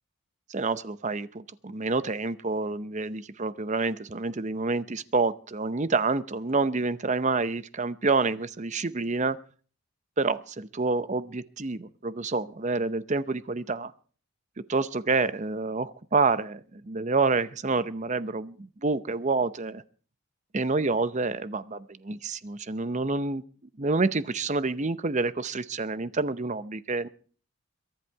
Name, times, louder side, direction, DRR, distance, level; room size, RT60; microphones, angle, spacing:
voice 1, 0.5-9.4 10.2-13.9 14.7-19.8 20.5-23.4 23.8-27.1, right 3 dB, 35° right, 14 dB, 0.7 m, -28 dB
22.5 x 10.5 x 4.6 m, 0.43 s
head